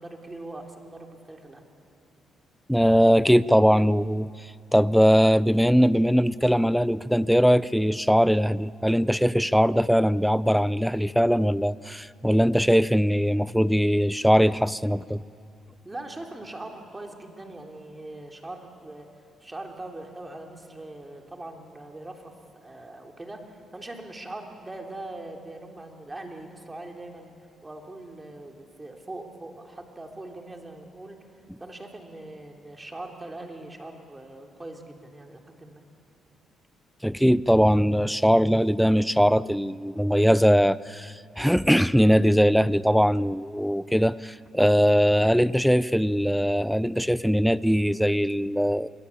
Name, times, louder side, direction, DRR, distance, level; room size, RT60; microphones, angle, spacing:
voice 1, 0.0-1.6 15.8-22.3 22.6-27.3 27.6-35.8, right 2 dB, 15° right, 3.5 m, -41 dB
voice 2, 2.7-4.3 4.7-15.2 37.0-48.9, equal, ahead, 0.5 m, -21 dB
26.5 x 22.0 x 8.5 m
cardioid pair, 90°, 0 cm